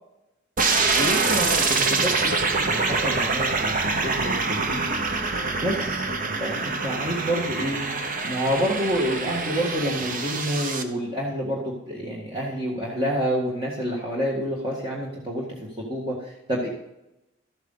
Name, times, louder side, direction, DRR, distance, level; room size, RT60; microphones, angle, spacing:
sound 1, 0.6-10.8, right 4 dB, 45° right, 1.0 m, -25 dB
voice 1, 0.9-6.0 6.4-16.7, equal, 25° right, -3 dB, 1.8 m, -28 dB
13.0 x 8.2 x 3.9 m, 0.88 s
head